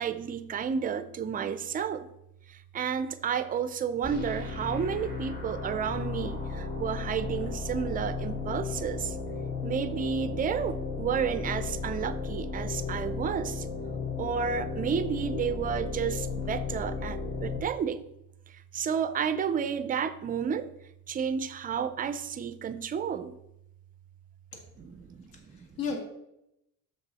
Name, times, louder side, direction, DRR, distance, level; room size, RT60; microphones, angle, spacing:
voice 1, 0.0-2.1 2.7-9.1 9.6-13.6 14.2-18.0 18.7-20.7 21.1-23.3 24.8-25.2 25.5-25.6, right 7 dB, 25° right, 12 dB, 0.4 m, -31 dB
sound 1, 4.0-17.6, left 4 dB, 30° left, 2.5 m, -35 dB
voice 2, 25.3-26.0, left 5 dB, 70° left, 1 dB, 2.2 m, -35 dB
6.8 x 6.1 x 4.0 m, 0.83 s
cardioid pair, 150°, 36 cm